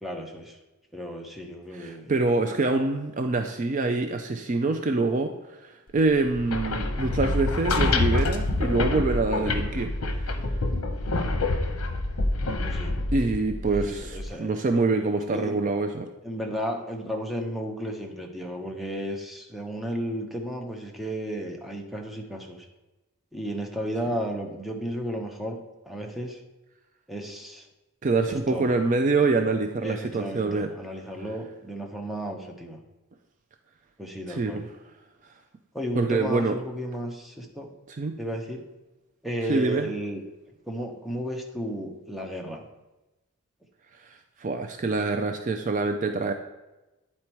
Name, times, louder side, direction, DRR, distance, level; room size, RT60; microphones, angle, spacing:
voice 1, 0.0-0.6 0.9-2.1 11.2-11.3 12.6-12.9 13.7-14.5 15.3-15.5 16.2-22.7 23.3-25.6 25.8-26.4 27.1-27.7 28.3-28.7 29.8-32.8 34.0-34.7 35.7-37.7 38.2-38.6 39.2-40.2 40.7-42.6, equal, ahead, 1 dB, 0.7 m, -33 dB
voice 2, 1.7-5.3 5.6-10.4 13.1-16.1 28.0-30.7 34.3-34.6 35.9-36.6 37.9-38.1 39.5-39.9 44.4-46.3, right 3 dB, 35° right, 5 dB, 0.4 m, -25 dB
sound 1, 6.3-14.3, left 2 dB, 65° left, 0.8 m, -27 dB
9.6 x 4.3 x 4.5 m, 1.0 s
head